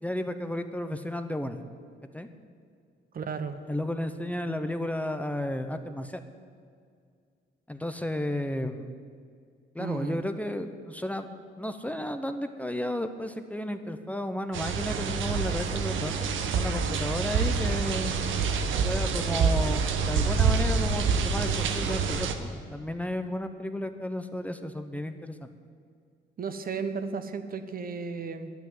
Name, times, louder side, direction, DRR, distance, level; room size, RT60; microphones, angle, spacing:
voice 1, 0.0-1.6 2.1-2.3 3.7-6.2 7.7-8.9 9.7-11.3 11.6-18.1 18.8-25.5, left 1 dB, 5° left, 8 dB, 0.8 m, -33 dB
voice 2, 3.1-3.6 9.8-10.2 26.4-28.5, right 5 dB, 45° right, 10 dB, 1.1 m, -34 dB
sound 1, 14.5-22.3, right 5 dB, 75° right, 1.2 m, -27 dB
10.5 x 9.3 x 9.4 m, 2.2 s
cardioid pair, 90°, 20 cm